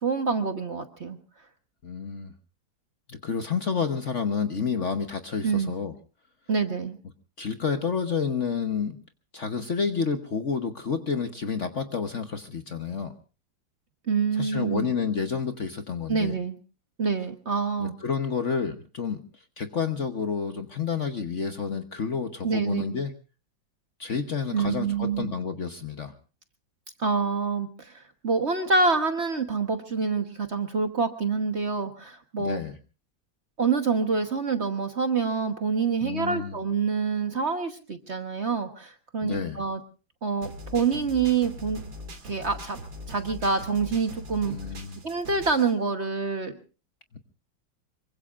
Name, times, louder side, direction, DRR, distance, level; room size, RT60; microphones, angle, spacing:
voice 1, 0.0-1.2 5.4-5.7 6.5-7.0 14.1-14.9 16.1-16.6 17.0-17.9 22.4-22.9 24.5-25.3 27.0-32.6 33.6-39.8 40.2-41.8 42.2-42.8 43.1-44.6 45.0-46.6, right 5 dB, 40° right, 6 dB, 1.2 m, -26 dB
voice 2, 1.8-2.3 3.1-5.9 7.4-9.0 9.3-13.1 14.4-16.3 17.8-19.2 19.6-23.1 24.0-26.1 32.4-32.7 36.0-36.6 39.2-39.6 44.4-45.0, left 5 dB, 45° left, 7 dB, 1.1 m, -29 dB
sound 1, 40.4-45.7, left 1 dB, 75° right, 3.1 m, -41 dB
25.5 x 23.5 x 2.4 m, 0.35 s
omnidirectional pair, 2.1 m